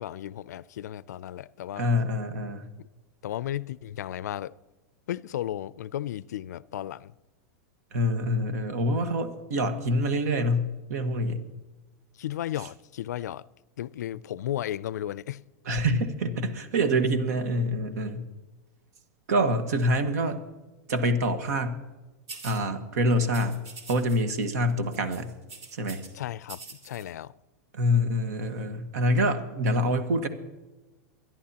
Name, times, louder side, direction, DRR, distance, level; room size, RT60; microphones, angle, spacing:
voice 1, 0.0-1.8 3.2-4.5 5.1-7.1 12.2-13.4 13.8-15.4 26.1-26.6 26.8-27.3, left 12 dB, 90° left, 0.4 m, -34 dB
voice 2, 1.8-2.7 7.9-11.4 15.6-18.3 19.3-20.4 20.9-21.8 22.4-23.6 23.9-25.3 25.7-26.0 27.7-30.3, equal, 75° right, 1.6 m, -26 dB
sound 1, 22.3-22.6 23.3-24.2 24.4-24.6 24.9-26.1 26.4-27.0, right 4 dB, 40° right, 2.6 m, -44 dB
23.0 x 11.0 x 2.9 m
supercardioid pair, 155°, 9 cm